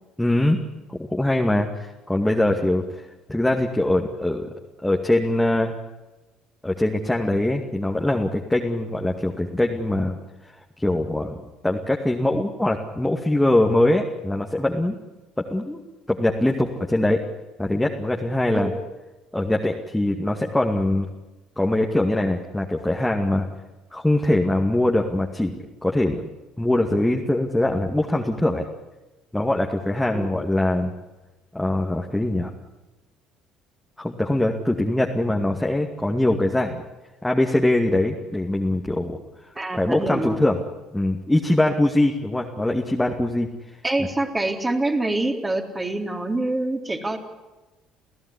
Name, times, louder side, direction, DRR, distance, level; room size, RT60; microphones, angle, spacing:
voice 1, 0.2-0.6 0.9-3.0 3.3-4.5 4.8-5.7 6.6-10.2 10.8-15.0 15.4-15.8 16.1-17.2 17.6-18.7 19.3-21.1 21.6-23.5 23.9-25.5 25.8-26.3 26.6-28.7 29.3-30.9 31.5-32.5 34.0-36.8 37.2-39.2 39.7-40.6 40.9-43.5, left 1 dB, 5° left, 1 dB, 2.4 m, -22 dB
voice 2, 39.6-40.4 43.8-47.2, right 2 dB, 20° right, 3 dB, 4.0 m, -25 dB
29.5 x 16.0 x 10.0 m, 1.1 s
figure-of-eight pair, 55°, 0 cm